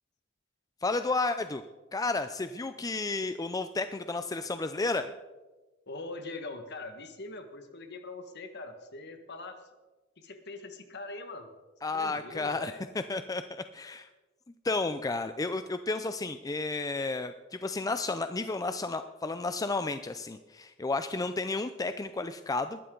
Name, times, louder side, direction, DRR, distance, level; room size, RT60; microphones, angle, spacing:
voice 1, 0.8-1.6 1.9-5.1 11.8-14.1 14.6-22.8, left 3 dB, 15° left, 10 dB, 0.4 m, -32 dB
voice 2, 5.9-9.6 10.2-11.5 11.9-12.8, left 2 dB, 55° left, 7 dB, 1.6 m, -42 dB
20.0 x 12.5 x 3.9 m, 1.2 s
head